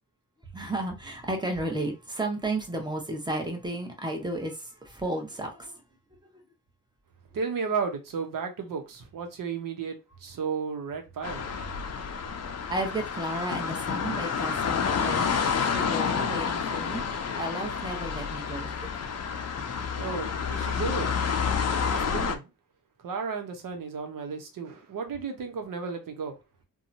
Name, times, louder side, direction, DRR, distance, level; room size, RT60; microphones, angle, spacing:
voice 1, 0.5-5.8 12.7-18.8, right 1 dB, 10° right, 1.0 m, -33 dB
voice 2, 7.3-11.5 20.0-21.1 21.9-22.5 23.0-26.4, right 5 dB, 70° right, 0.8 m, -33 dB
sound 1, 11.2-22.4, left 6 dB, 50° left, 0.5 m, -29 dB
2.7 x 2.2 x 2.6 m
cardioid pair, 60°, 35 cm